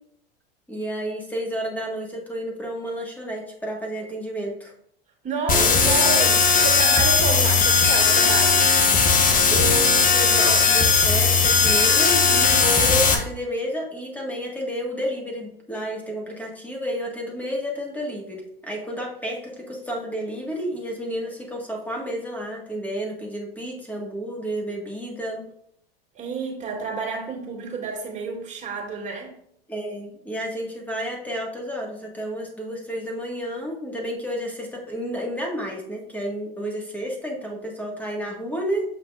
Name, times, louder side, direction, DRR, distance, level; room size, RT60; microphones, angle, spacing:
voice 1, 0.7-4.7 5.5-5.9 9.5-25.5 29.7-38.8, equal, 5° left, -1 dB, 1.7 m, -31 dB
voice 2, 5.2-8.7 26.1-29.4, right 4 dB, 25° right, -2 dB, 2.3 m, -30 dB
sound 1, 5.5-13.1, left 5 dB, 25° left, 1.0 m, -18 dB
6.9 x 5.6 x 2.5 m, 0.71 s
hypercardioid pair, 90°, 30 cm